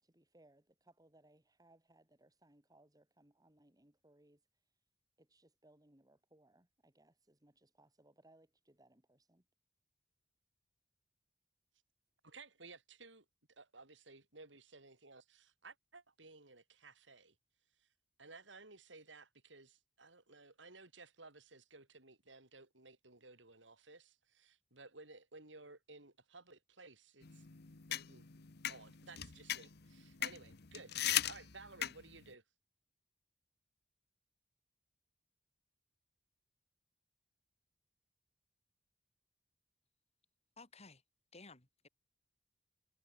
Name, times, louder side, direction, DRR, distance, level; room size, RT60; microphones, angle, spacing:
voice 1, 0.0-4.4 5.2-9.5, right 1 dB, 20° right, 3.9 m, -68 dB
voice 2, 12.2-17.3 18.2-27.5 27.9-28.3 28.7-32.4, right 3 dB, 90° right, 6.2 m, -57 dB
sound 1, 27.2-32.3, left 12 dB, 60° left, 1.1 m, -39 dB
voice 3, 40.6-41.0 41.3-41.9, left 3 dB, 35° left, 3.8 m, -56 dB
head